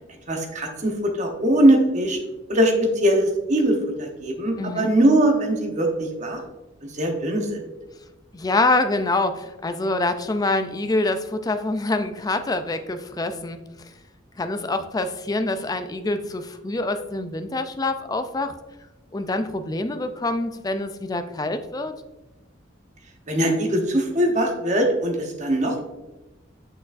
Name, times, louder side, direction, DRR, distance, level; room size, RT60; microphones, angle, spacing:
voice 1, 0.3-2.2 2.5-6.4 6.9-7.6 23.3-25.8, right 1 dB, 40° right, 3 dB, 0.9 m, -21 dB
voice 2, 4.6-4.9 8.3-13.6 14.4-18.5 19.1-21.9, left 2 dB, 20° left, 9 dB, 0.3 m, -25 dB
6.3 x 6.0 x 2.5 m, 1.0 s
head